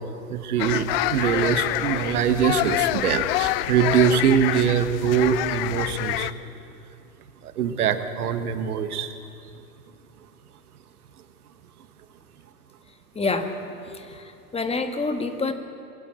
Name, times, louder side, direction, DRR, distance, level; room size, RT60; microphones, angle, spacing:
voice 1, 0.3-6.3 7.6-9.1, right 8 dB, 65° right, 9 dB, 1.5 m, -23 dB
sound 1, 0.6-6.3, left 16 dB, 40° left, 0.6 m, -26 dB
voice 2, 13.1-13.5 13.9-15.5, left 3 dB, 10° left, 7 dB, 1.4 m, -27 dB
22.5 x 15.0 x 7.9 m, 2.6 s
figure-of-eight pair, 90°, 49 cm